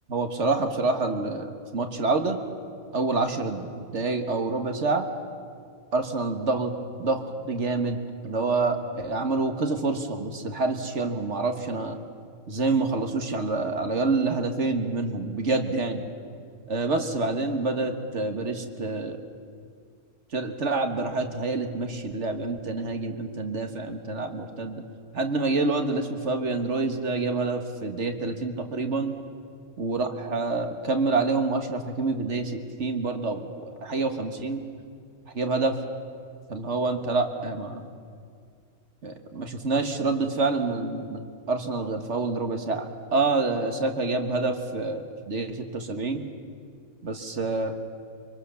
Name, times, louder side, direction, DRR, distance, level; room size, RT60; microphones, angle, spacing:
voice 1, 0.1-2.4 2.9-5.1 5.9-6.7 7.0-12.0 12.5-16.1 16.7-19.2 20.3-24.8 25.1-29.1 29.8-34.6 35.3-35.8 36.5-37.9 39.0-46.2 47.0-47.8, right 3 dB, 55° right, 5 dB, 1.8 m, -27 dB
24.5 x 24.0 x 7.0 m, 2.2 s
omnidirectional pair, 1.5 m